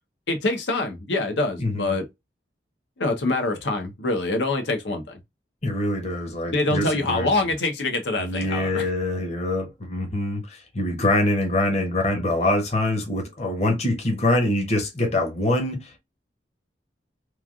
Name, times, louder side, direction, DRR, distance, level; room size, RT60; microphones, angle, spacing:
voice 1, 0.3-2.0 3.0-5.2 6.5-8.9, left 2 dB, 90° left, 0.9 m, -25 dB
voice 2, 1.6-1.9 5.6-7.4 8.2-16.0, left 1 dB, 40° left, 0.8 m, -24 dB
3.2 x 2.4 x 2.4 m
head